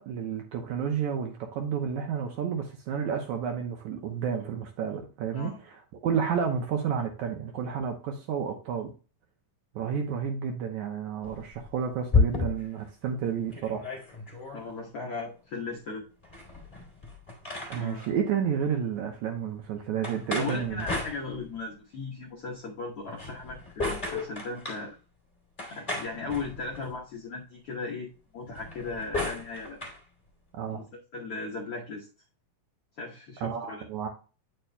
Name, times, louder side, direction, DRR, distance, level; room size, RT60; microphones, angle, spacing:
voice 1, 0.0-8.9 9.8-13.9 17.7-20.9 30.5-30.8 33.4-34.1, right 7 dB, 75° right, 1.9 m, -31 dB
sound 1, 11.2-12.8 13.2-13.3 13.5-14.6 16.2-18.1 20.0-21.7 23.0-24.9 25.6-27.0 28.5-30.0, left 3 dB, 15° left, 2.2 m, -32 dB
voice 2, 14.5-16.0 17.7-18.1 20.4-24.9 25.7-28.1 28.3-29.8 30.7-30.9 31.1-32.1 33.0-33.8, left 3 dB, 70° left, 1.3 m, -37 dB
9.0 x 6.7 x 2.2 m
omnidirectional pair, 4.1 m